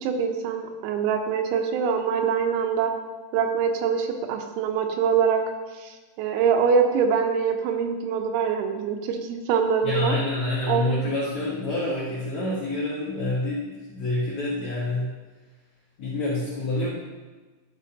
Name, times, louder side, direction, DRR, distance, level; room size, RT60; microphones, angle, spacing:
voice 1, 0.0-2.9 3.3-5.4 5.8-10.2 10.7-11.0, right 6 dB, 90° right, 4 dB, 3.6 m, -24 dB
voice 2, 9.8-15.1 16.0-16.9, left 2 dB, 70° left, -9 dB, 1.7 m, -27 dB
12.5 x 7.2 x 2.8 m, 1.3 s
omnidirectional pair, 5.9 m